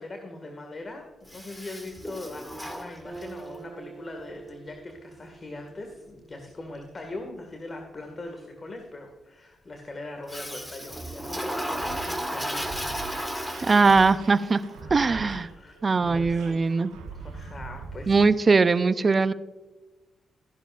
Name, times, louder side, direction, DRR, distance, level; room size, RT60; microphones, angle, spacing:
voice 1, 0.0-13.8 14.8-16.6 17.1-18.3, left 2 dB, 40° left, 4 dB, 1.9 m, -41 dB
Toilet flush, 1.3-3.5 10.3-14.4, equal, 5° left, 2.1 m, -34 dB
Acoustic guitar, 3.0-6.6, right 5 dB, 15° right, 3.6 m, -46 dB
sound 1, 11.8-18.2, right 5 dB, 85° right, 1.5 m, -42 dB
voice 2, 13.6-14.6 14.9-15.5 15.8-16.9 18.1-19.3, right 4 dB, 45° right, 14 dB, 0.6 m, -20 dB
14.5 x 11.0 x 2.5 m, 1.1 s
supercardioid pair, 45°, 0 cm